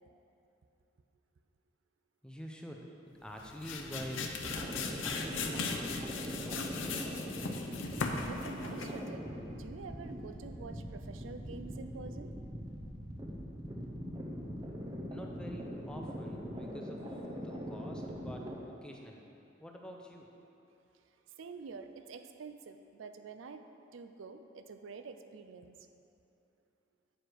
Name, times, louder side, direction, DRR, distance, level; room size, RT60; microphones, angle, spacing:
voice 1, 2.2-7.2 15.1-19.3 19.6-20.3, equal, 5° left, 1 dB, 0.5 m, -47 dB
sound 1, 3.3-9.1, left 4 dB, 80° left, 0.6 m, -38 dB
sound 2, 4.4-18.5, equal, 20° right, 0.8 m, -42 dB
voice 2, 8.3-9.3 9.6-12.3 20.9-25.7, right 4 dB, 80° right, 8 dB, 0.4 m, -48 dB
9.1 x 4.9 x 4.6 m, 2.8 s
head